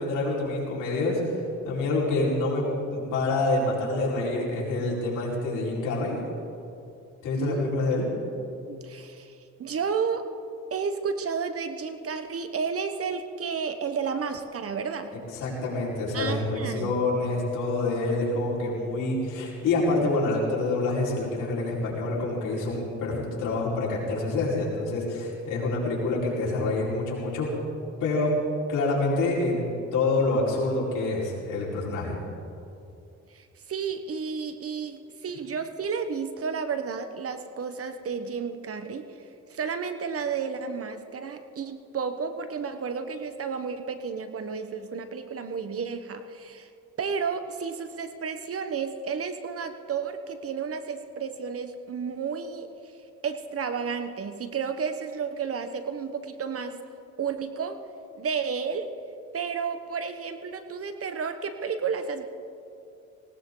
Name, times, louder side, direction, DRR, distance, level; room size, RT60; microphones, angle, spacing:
voice 1, 0.0-1.4 1.6-2.6 2.9-6.2 7.2-8.1 15.3-27.5 28.0-28.3 28.7-32.2, left 2 dB, 85° left, -5 dB, 4.9 m, -27 dB
voice 2, 7.3-7.7 8.7-10.3 10.7-15.1 16.1-16.9 33.3-39.1 39.5-46.7 47.0-52.7 53.2-56.8 57.2-57.8 58.2-58.9 59.3-62.3, right 6 dB, 50° right, 8 dB, 1.3 m, -32 dB
19.0 x 18.5 x 4.0 m, 2.6 s
cardioid pair, 90°, 30 cm